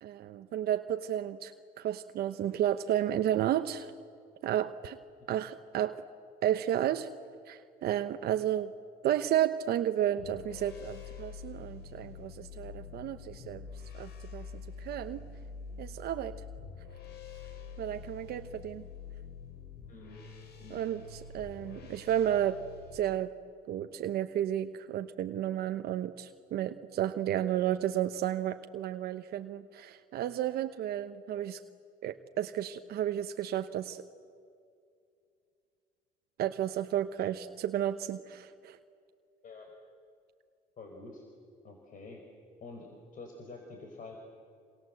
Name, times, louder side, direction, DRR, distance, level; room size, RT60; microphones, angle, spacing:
voice 1, 0.0-3.9 4.4-5.0 5.3-6.0 6.4-7.1 7.5-8.7 9.0-13.7 13.9-14.5 14.8-15.2 15.8-16.3 17.8-18.8 20.7-22.6 22.9-23.3 23.7-31.6 32.0-34.0 36.4-38.8, right 11 dB, 65° right, 8 dB, 1.0 m, -32 dB
sound 1, 10.2-23.0, left 6 dB, 70° left, 4.5 m, -46 dB
voice 2, 19.9-20.2 20.6-20.9 39.4-39.7 40.8-41.2 41.6-42.2 42.6-44.2, left 3 dB, 50° left, 2 dB, 5.0 m, -47 dB
27.5 x 27.0 x 7.8 m, 2.4 s
cardioid pair, 110°, 17 cm